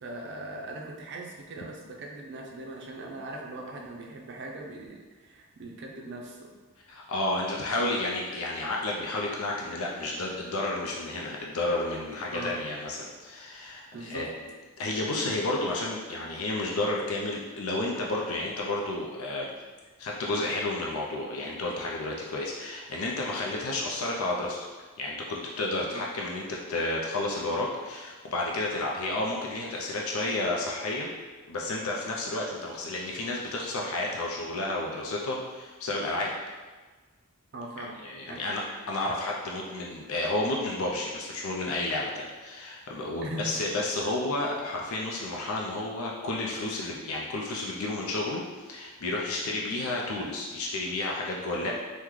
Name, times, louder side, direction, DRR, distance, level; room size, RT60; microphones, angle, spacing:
voice 1, 0.0-6.5 12.3-12.6 13.9-14.3 25.8-26.0 37.5-38.0 38.3-38.6 43.2-43.6 51.6-51.7, right 2 dB, 50° right, -1 dB, 0.5 m, -40 dB
voice 2, 6.9-14.3 14.8-19.5 20.0-24.7 25.0-31.1 31.5-36.3 38.0-38.6 38.9-51.7, left 2 dB, 65° left, -2 dB, 0.4 m, -31 dB
3.7 x 2.1 x 3.0 m, 1.3 s
head